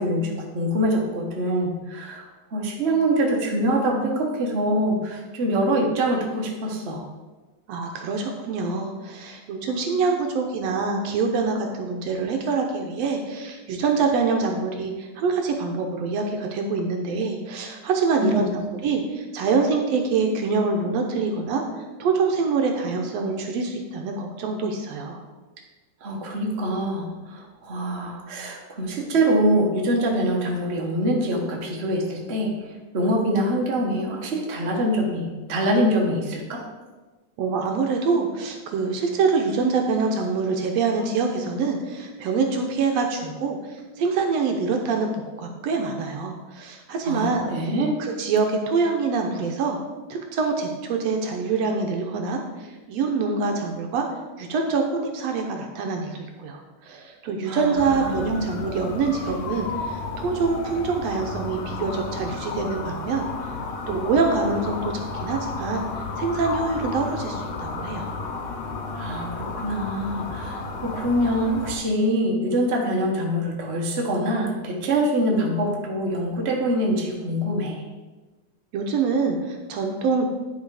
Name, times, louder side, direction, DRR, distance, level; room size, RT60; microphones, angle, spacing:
voice 1, 0.0-2.2 2.5-7.0 18.2-18.6 26.0-36.6 47.0-47.9 57.5-58.5 68.9-77.8, right 1 dB, 45° right, -1 dB, 0.8 m, -24 dB
voice 2, 7.7-18.5 18.8-21.6 22.0-25.2 37.4-47.4 48.0-49.8 50.1-54.1 54.4-63.2 63.9-65.8 66.2-68.2 78.7-80.2, right 4 dB, 70° right, 3 dB, 1.7 m, -25 dB
sound 1, 57.8-71.8, left 3 dB, 80° left, 2.3 m, -32 dB
10.5 x 4.8 x 4.8 m, 1.3 s
omnidirectional pair, 3.4 m